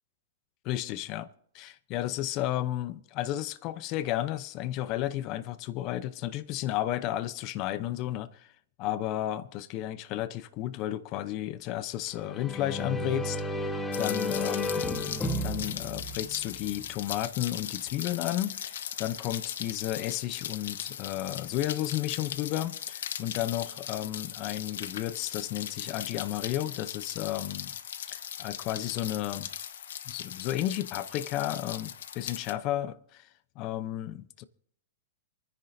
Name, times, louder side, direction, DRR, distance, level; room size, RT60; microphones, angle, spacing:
voice 1, 0.6-1.3 1.5-8.5 8.8-15.0 15.4-27.7 28.1-29.5 30.1-33.3 33.6-34.4, left 13 dB, 35° left, 0.7 m, -33 dB
sound 1, 12.1-16.9, left 1 dB, 10° left, 1.1 m, -33 dB
Rain, 13.9-32.5, left 9 dB, 75° left, 1.1 m, -39 dB
27.5 x 10.5 x 2.7 m
hypercardioid pair, 160°, 0 cm